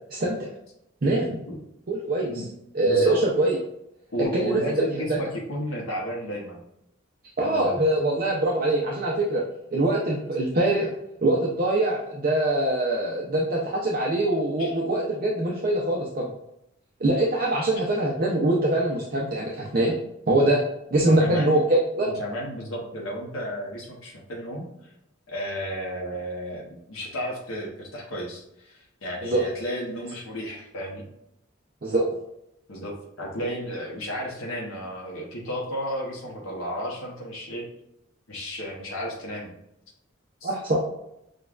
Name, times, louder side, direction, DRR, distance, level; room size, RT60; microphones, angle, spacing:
voice 1, 0.1-0.5 1.0-1.4 1.9-2.4 2.7-3.6 4.2-4.6 5.1-5.2 7.4-9.4 9.7-10.9 11.2-16.3 17.0-20.0 20.3-22.1 29.2-29.4 31.8-32.1 40.4-40.8, right 1 dB, 45° right, -3 dB, 0.5 m, -23 dB
voice 2, 2.9-3.2 4.1-6.6 7.4-7.8 14.6-14.7 17.6-17.7 21.0-21.6 22.0-24.7 25.3-31.1 32.7-37.7 38.3-39.5 40.4-40.5, equal, 90° left, -2 dB, 0.9 m, -33 dB
6.4 x 2.3 x 2.4 m, 0.81 s
head